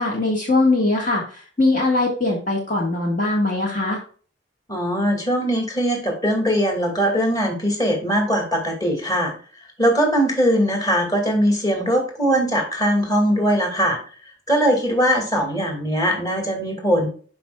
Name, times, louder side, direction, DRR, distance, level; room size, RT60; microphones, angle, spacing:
voice 1, 0.0-4.0, left 2 dB, 45° left, -1 dB, 1.7 m, -21 dB
voice 2, 4.7-9.3 9.8-14.0 14.5-17.1, equal, 20° left, 1 dB, 2.3 m, -20 dB
11.5 x 5.2 x 2.3 m, 0.41 s
head